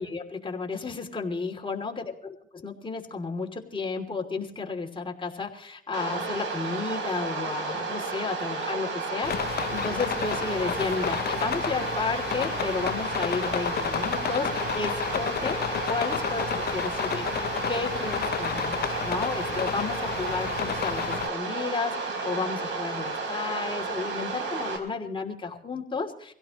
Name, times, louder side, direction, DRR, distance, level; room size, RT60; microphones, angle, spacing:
voice 1, 0.0-26.3, left 4 dB, 25° left, 1 dB, 2.9 m, -33 dB
sound 1, 5.9-24.8, right 4 dB, 70° right, 4.0 m, -32 dB
sound 2, 9.2-21.3, left 9 dB, 55° left, 0.6 m, -31 dB
24.5 x 16.5 x 3.1 m, 0.70 s
cardioid pair, 90°, 20 cm